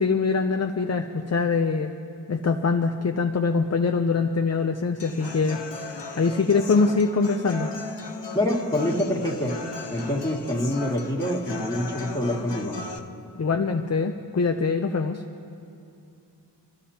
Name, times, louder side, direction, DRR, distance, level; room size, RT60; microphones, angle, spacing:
voice 1, 0.0-1.9 2.3-5.6 6.2-7.7 13.4-15.2, left 4 dB, 35° left, 5 dB, 0.6 m, -23 dB
Human voice / Acoustic guitar, 5.0-13.0, left 3 dB, 75° left, 0.9 m, -37 dB
voice 2, 8.3-9.5 9.9-12.8, left 1 dB, 10° left, -2 dB, 2.2 m, -26 dB
25.0 x 13.5 x 2.9 m, 2.6 s
wide cardioid pair, 50°, 43 cm